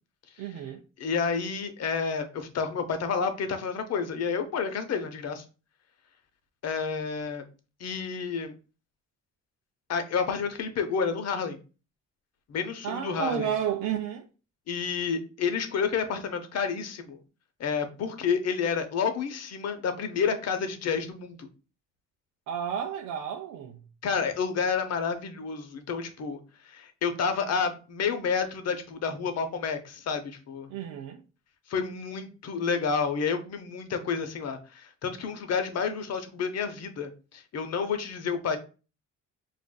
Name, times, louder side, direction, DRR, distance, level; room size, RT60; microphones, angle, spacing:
voice 1, 0.4-0.8 12.8-14.3 22.5-23.8 30.7-31.2, right 8 dB, 90° right, 0.5 m, -32 dB
voice 2, 1.0-5.4 6.6-7.4 7.8-8.5 9.9-11.6 12.5-13.5 14.7-17.2 17.6-21.5 24.0-26.4 26.6-30.7 31.7-38.6, left 6 dB, 60° left, 0.7 m, -30 dB
4.8 x 2.5 x 2.2 m
cardioid pair, 90°, 30 cm